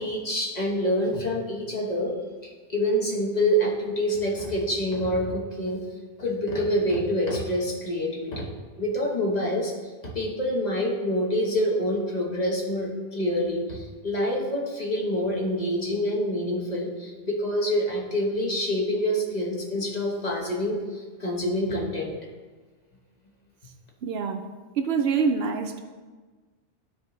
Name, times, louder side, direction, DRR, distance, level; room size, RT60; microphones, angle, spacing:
voice 1, 0.0-2.1 2.4-5.8 6.2-8.5 8.8-9.7 10.0-22.2, equal, 40° left, -2 dB, 1.2 m, -26 dB
voice 2, 24.0-24.4 24.8-25.8, right 5 dB, 70° right, 5 dB, 0.8 m, -25 dB
12.5 x 4.3 x 3.1 m, 1.4 s
omnidirectional pair, 1.2 m